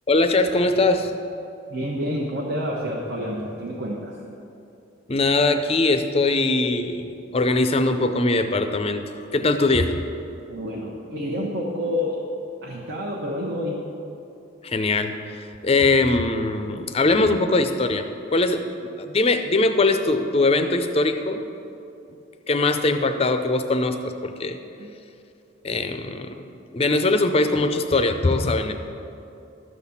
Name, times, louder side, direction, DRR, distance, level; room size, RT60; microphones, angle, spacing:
voice 1, 0.1-1.1 5.1-10.0 14.6-18.7 19.0-21.5 22.5-24.6 25.6-28.7, left 2 dB, 30° left, 7 dB, 0.5 m, -21 dB
voice 2, 1.7-4.2 10.5-12.2 12.6-13.8 24.8-24.9, equal, 60° right, -4 dB, 1.0 m, -28 dB
12.5 x 4.1 x 7.1 m, 2.7 s
head